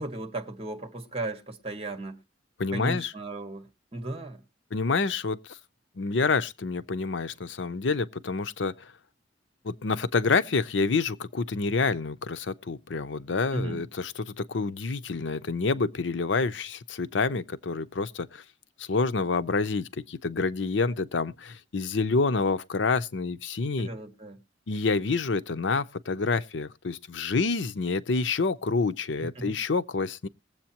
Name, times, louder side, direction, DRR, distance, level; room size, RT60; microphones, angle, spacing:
voice 1, 0.0-2.2 2.7-4.4 13.5-13.8 23.8-24.4 29.2-29.5, right 2 dB, 35° right, 1.7 m, -35 dB
voice 2, 2.6-3.1 4.7-5.6 6.0-8.9 9.6-18.4 18.8-23.9 24.7-30.3, left 4 dB, 85° left, 0.6 m, -28 dB
21.0 x 7.8 x 2.9 m
head